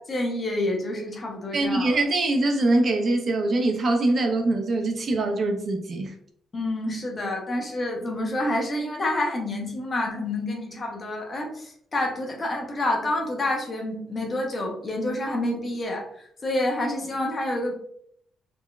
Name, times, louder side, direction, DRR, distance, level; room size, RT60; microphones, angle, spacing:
voice 1, 0.0-2.0 6.5-17.7, left 1 dB, 25° left, 1 dB, 0.6 m, -28 dB
voice 2, 1.5-6.1, right 2 dB, 35° right, 4 dB, 0.3 m, -23 dB
3.7 x 2.1 x 2.3 m, 0.67 s
cardioid pair, 180°, 0 cm